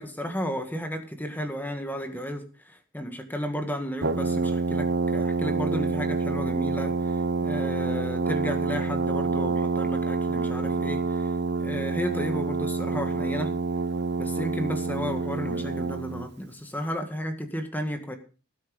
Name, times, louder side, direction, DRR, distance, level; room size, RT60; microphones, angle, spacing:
voice 1, 0.0-11.3 11.6-13.5 14.2-18.2, equal, 10° left, 6 dB, 1.9 m, -33 dB
Brass instrument, 4.0-16.3, right 3 dB, 50° right, 0.9 m, -27 dB
18.5 x 8.1 x 5.3 m, 0.36 s
head